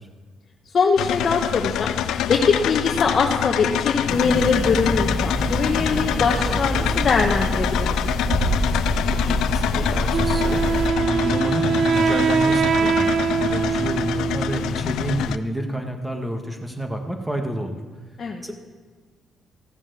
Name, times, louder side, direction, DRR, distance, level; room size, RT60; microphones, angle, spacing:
voice 1, 0.7-1.9 2.3-7.9 18.2-18.4, left 5 dB, 50° left, 1 dB, 1.2 m, -22 dB
sound 1, 1.0-15.4, left 10 dB, 85° left, 0.4 m, -26 dB
sound 2, 4.0-10.9, equal, 35° right, 3.7 m, -25 dB
voice 2, 9.3-13.1 13.4-17.8 18.4-18.5, right 1 dB, 10° right, 4 dB, 1.8 m, -29 dB
Wind instrument woodwind instrument, 10.1-14.9, right 6 dB, 55° right, 0.6 m, -22 dB
15.0 x 7.3 x 6.9 m, 1.5 s
cardioid pair, 90°, 0 cm